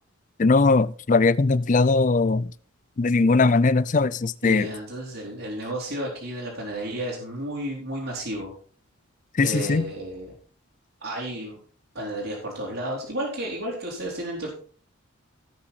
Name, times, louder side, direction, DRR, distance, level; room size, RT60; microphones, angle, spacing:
voice 1, 0.4-2.5 3.0-4.7 9.4-9.8, left 3 dB, 35° left, 0.4 m, -20 dB
voice 2, 4.4-8.5 9.4-10.3 11.0-11.6 11.9-14.5, right 1 dB, 65° right, 3.5 m, -32 dB
17.0 x 6.0 x 4.2 m
head